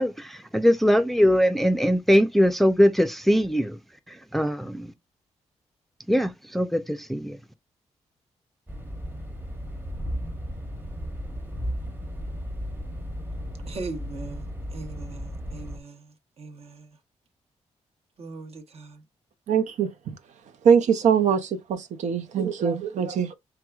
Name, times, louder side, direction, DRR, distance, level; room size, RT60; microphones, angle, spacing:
voice 1, 0.0-3.8 4.1-4.9 6.1-7.4, equal, ahead, 0.5 m, -21 dB
sound 1, 8.7-15.8, equal, 15° right, 1.1 m, -34 dB
voice 2, 13.6-14.4 14.7-16.9 18.2-19.0, right 3 dB, 55° right, 1.0 m, -39 dB
voice 3, 19.5-20.1 20.6-23.3, right 7 dB, 80° right, 0.6 m, -23 dB
4.6 x 3.5 x 2.3 m
cardioid pair, 100°, 12 cm